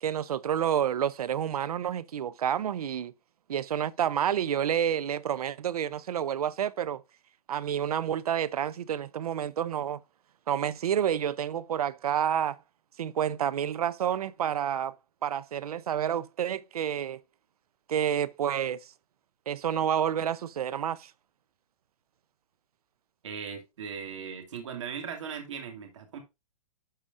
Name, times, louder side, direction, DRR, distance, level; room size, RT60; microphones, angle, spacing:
voice 1, 0.0-3.1 3.5-7.0 7.5-10.0 10.5-12.6 13.0-14.9 15.2-17.2 17.9-18.9 19.5-21.1, right 9 dB, 80° right, 0.6 m, -29 dB
voice 2, 23.2-26.2, right 7 dB, 55° right, 2.3 m, -38 dB
11.5 x 4.9 x 2.5 m
hypercardioid pair, 175°, 19 cm